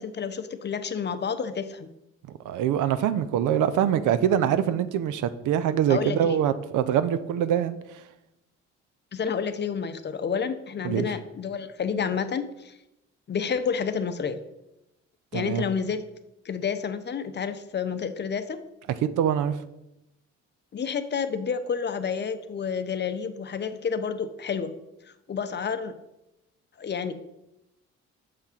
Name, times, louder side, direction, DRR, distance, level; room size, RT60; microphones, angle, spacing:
voice 1, 0.0-1.9 5.9-6.4 9.1-12.7 13.3-14.4 15.3-16.0 16.4-18.6 20.7-24.7 25.3-26.0 26.8-27.1, left 6 dB, 35° left, 10 dB, 0.6 m, -29 dB
voice 2, 2.3-7.8 10.8-11.1 15.3-15.6 19.0-19.6, right 9 dB, 80° right, 13 dB, 0.6 m, -24 dB
6.6 x 3.6 x 5.8 m, 0.89 s
cardioid pair, 90°, 30 cm